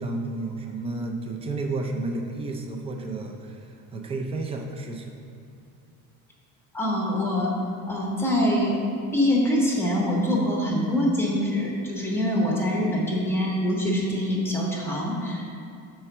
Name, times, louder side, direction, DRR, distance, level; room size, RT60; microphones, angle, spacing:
voice 1, 0.0-5.1, right 2 dB, 20° right, 3 dB, 0.4 m, -32 dB
voice 2, 6.7-7.5 7.9-8.8 9.1-15.5, left 1 dB, 5° left, -3 dB, 0.8 m, -24 dB
5.5 x 4.4 x 5.9 m, 2.5 s
cardioid pair, 175°, 34 cm